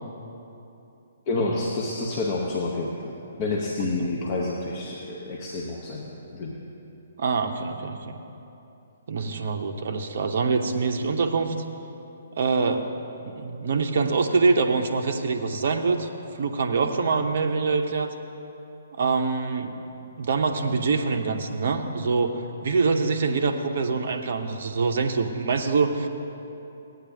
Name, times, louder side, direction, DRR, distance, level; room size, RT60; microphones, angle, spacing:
voice 1, 1.3-6.6, left 2 dB, 35° left, -2 dB, 0.8 m, -29 dB
voice 2, 7.2-8.2 9.1-11.5 12.4-12.9 13.2-16.1 16.4-18.1 19.0-19.8 20.2-22.3 22.6-26.1, right 4 dB, 50° right, 5 dB, 0.5 m, -24 dB
16.0 x 9.1 x 2.7 m, 2.8 s
figure-of-eight pair, 125°, 0 cm